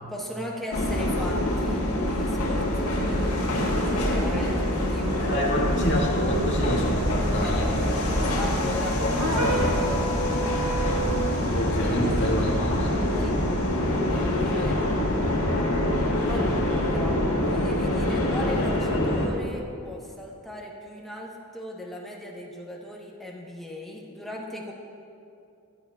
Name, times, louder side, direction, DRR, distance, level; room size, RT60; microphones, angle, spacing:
voice 1, 0.1-3.2 4.1-5.5 7.4-7.7 8.3-9.9 11.8-11.9 13.2-13.4 14.1-15.0 16.2-24.7, left 1 dB, ahead, -3 dB, 1.0 m, -37 dB
sound 1, 0.7-19.3, left 1 dB, 90° left, 1.6 m, -25 dB
Musical instrument, 2.9-14.5, equal, 35° right, 2.5 m, -35 dB
voice 2, 5.2-7.7 10.9-11.0 11.3-13.0 14.3-15.0, equal, 50° left, -5 dB, 2.1 m, -28 dB
sound 2, 9.2-11.4, right 3 dB, 85° right, 1.5 m, -29 dB
15.5 x 11.0 x 2.4 m, 2.6 s
head